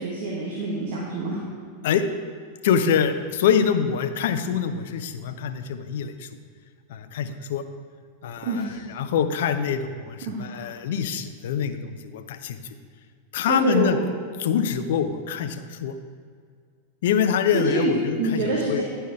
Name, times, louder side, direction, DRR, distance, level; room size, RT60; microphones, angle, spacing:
voice 1, 0.0-1.4 8.4-8.8 10.2-10.7 13.5-14.0 17.5-17.9 18.2-18.8, right 3 dB, 50° right, -3 dB, 1.5 m, -26 dB
voice 2, 2.6-6.3 6.9-7.6 8.2-12.6 13.3-14.0 14.4-15.9 17.0-18.8, left 7 dB, 55° left, 10 dB, 0.6 m, -25 dB
10.5 x 5.7 x 4.5 m, 2.1 s
figure-of-eight pair, 90°, 0 cm